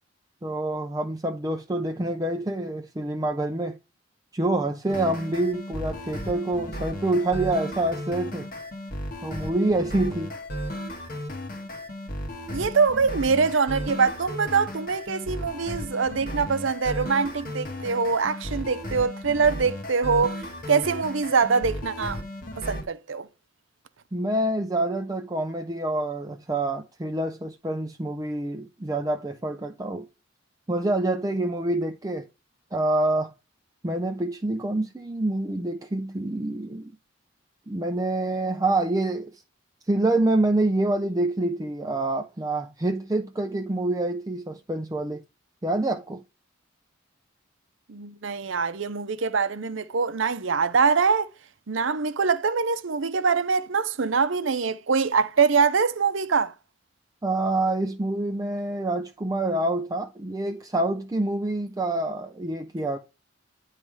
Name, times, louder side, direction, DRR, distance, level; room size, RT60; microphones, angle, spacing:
voice 1, 0.4-3.8 4.3-8.5 9.2-10.3 24.1-30.1 30.7-32.3 32.7-33.3 33.8-36.9 37.7-39.4 39.9-45.2 45.6-46.2 57.2-63.0, right 2 dB, 15° right, 0.4 m, -26 dB
sound 1, 4.9-22.8, equal, 45° left, 1.2 m, -35 dB
voice 2, 12.5-20.4 20.7-22.2 22.6-23.3 47.9-51.3 51.7-56.5, right 5 dB, 70° right, 0.6 m, -24 dB
9.6 x 3.2 x 4.8 m
head